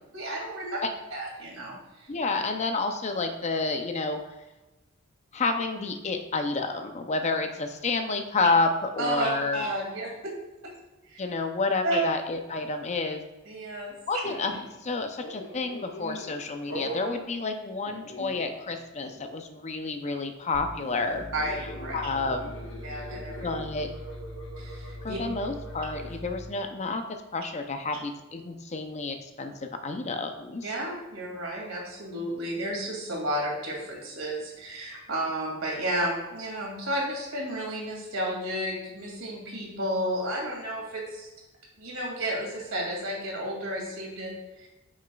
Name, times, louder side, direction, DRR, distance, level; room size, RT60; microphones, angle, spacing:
voice 1, 0.1-0.8 1.1-2.1 9.0-10.3 11.1-11.2 11.8-12.1 13.5-13.9 21.3-22.0 22.8-23.3 24.6-25.2 30.6-41.3 41.8-44.3 44.6-44.7, right 1 dB, 70° right, -2 dB, 2.4 m, -32 dB
voice 2, 2.1-4.2 5.3-9.6 11.2-13.2 14.1-21.2 21.9-22.5 23.1-23.9 25.0-27.0 27.3-30.7, left 3 dB, 35° left, 6 dB, 0.5 m, -30 dB
sound 1, 14.2-14.7 15.2-16.4 16.7-17.2 17.9-18.8 19.0-19.3 21.3-26.2, equal, 65° left, 1.3 m, -41 dB
sound 2, 20.5-26.7, left 1 dB, 30° right, 0.7 m, -42 dB
8.9 x 6.4 x 2.3 m, 1.1 s
head